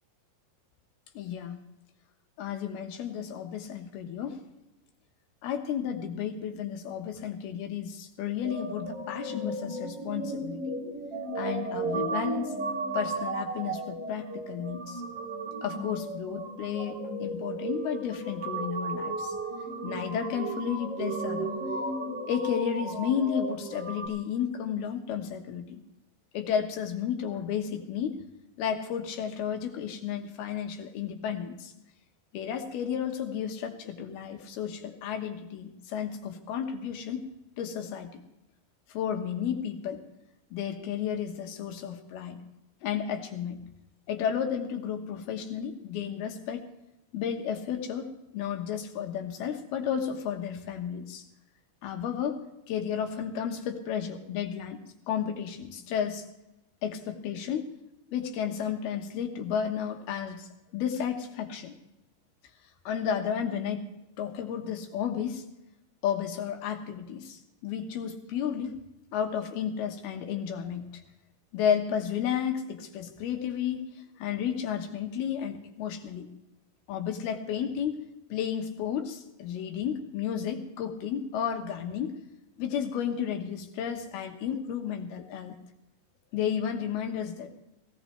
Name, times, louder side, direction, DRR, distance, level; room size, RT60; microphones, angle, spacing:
voice 1, 1.2-1.6 2.4-4.4 5.4-10.7 11.4-12.5 12.9-15.0 15.6-19.3 19.8-21.5 22.2-25.8 26.3-28.2 28.6-31.7 32.3-37.3 37.6-38.1 38.9-40.0 40.5-42.4 42.8-43.6 44.1-46.6 47.1-51.2 51.8-56.2 56.8-57.7 58.1-60.5 60.7-61.7 62.9-63.9 64.2-65.4 66.0-68.8 69.1-70.9 71.5-73.9 74.2-76.3 76.9-78.0 78.3-82.1 82.6-85.5 86.3-87.5, left 8 dB, 80° left, 4 dB, 3.2 m, -32 dB
sound 1, 8.4-24.1, right 2 dB, 35° right, 2.9 m, -34 dB
17.5 x 17.5 x 3.3 m, 0.90 s
omnidirectional pair, 4.4 m